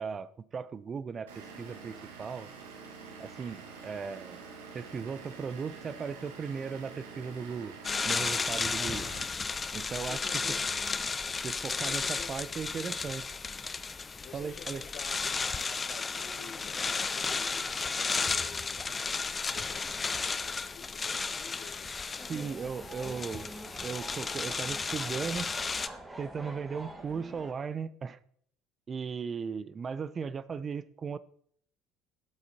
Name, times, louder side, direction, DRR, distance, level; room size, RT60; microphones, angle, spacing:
voice 1, 0.0-2.5 3.2-4.5 4.7-7.8 8.0-9.1 9.7-10.2 11.4-13.3 14.3-14.8 22.3-23.5 23.8-25.6 26.2-28.2 28.9-31.2, right 6 dB, 35° right, 0.5 m, -37 dB
Vehicle / Engine, 1.3-9.3, right 5 dB, 80° right, 1.7 m, -47 dB
sound 1, 7.8-25.9, left 4 dB, 25° left, 0.5 m, -33 dB
voice 2, 8.8-9.2 9.9-10.7 11.7-12.4 14.2-23.2, left 7 dB, 55° left, 1.2 m, -50 dB
sound 2, 22.2-27.5, right 1 dB, 15° right, 1.6 m, -46 dB
12.0 x 8.1 x 2.8 m
hypercardioid pair, 65°, 0 cm